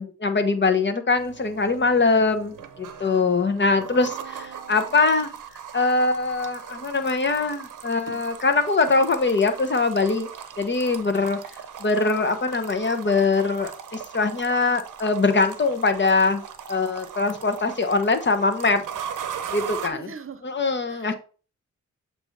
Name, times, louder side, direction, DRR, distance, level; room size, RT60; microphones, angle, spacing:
voice 1, 0.0-5.3 5.7-10.3 10.6-11.4 11.8-16.4 16.7-18.8 19.5-20.1 20.4-21.1, left 3 dB, 35° left, 1.1 m, -22 dB
sound 1, 1.2-19.9, right 8 dB, 90° right, 0.7 m, -39 dB
voice 2, 3.8-5.2 19.9-20.4 20.9-21.1, right 5 dB, 45° right, 0.9 m, -42 dB
7.7 x 2.8 x 4.7 m
cardioid pair, 70°, 31 cm